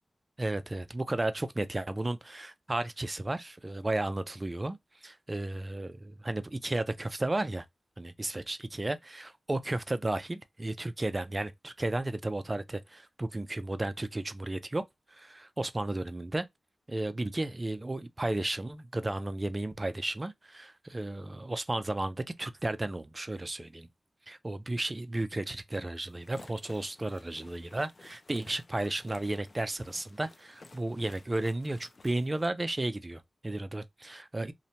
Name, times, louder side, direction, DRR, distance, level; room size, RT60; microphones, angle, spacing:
voice 1, 0.4-7.7 8.0-14.8 15.1-16.5 16.9-23.9 24.3-34.5, right 2 dB, 30° right, 0.3 m, -33 dB
sound 1, 26.1-32.5, left 3 dB, 50° left, 0.4 m, -54 dB
2.8 x 2.1 x 2.6 m
wide cardioid pair, 70°, 0 cm